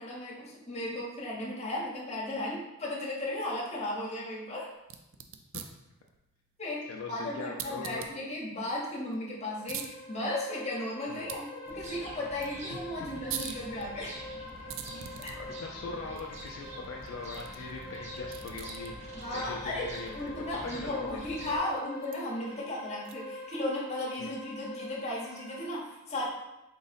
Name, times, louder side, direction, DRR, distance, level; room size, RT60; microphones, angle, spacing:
voice 1, 0.0-4.7 6.6-14.2 15.2-15.4 19.1-26.3, left 1 dB, 30° left, -4 dB, 0.9 m, -35 dB
sound 1, 4.8-23.5, right 8 dB, 60° right, 0.3 m, -47 dB
voice 2, 6.9-8.0 11.1-11.3 12.7-12.8 15.4-20.3 20.6-21.2 24.2-24.3, left 3 dB, 65° left, 0 dB, 0.3 m, -41 dB
sound 2, 9.4-25.7, left 1 dB, ahead, 1.0 m, -45 dB
sound 3, 11.6-21.6, equal, 30° right, 0.6 m, -46 dB
3.8 x 2.0 x 4.0 m, 0.93 s
head